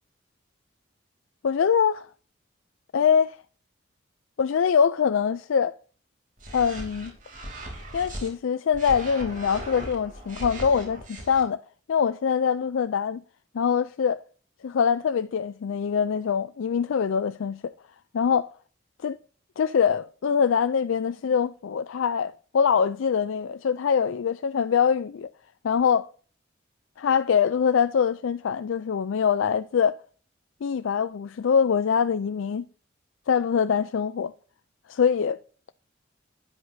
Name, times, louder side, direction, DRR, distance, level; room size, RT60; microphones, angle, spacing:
voice 1, 1.4-2.1 2.9-3.4 4.4-5.7 6.5-7.1 7.9-11.6 11.9-13.2 13.5-14.2 14.8-17.7 18.1-18.5 19.0-19.2 19.6-25.3 25.6-26.1 27.0-30.0 30.6-32.6 33.3-34.3 34.9-35.4, left 7 dB, 80° left, 0.4 m, -23 dB
sound 1, 6.4-8.3 8.7-11.4, right 1 dB, 40° right, 3.0 m, -38 dB
12.5 x 9.6 x 2.7 m
head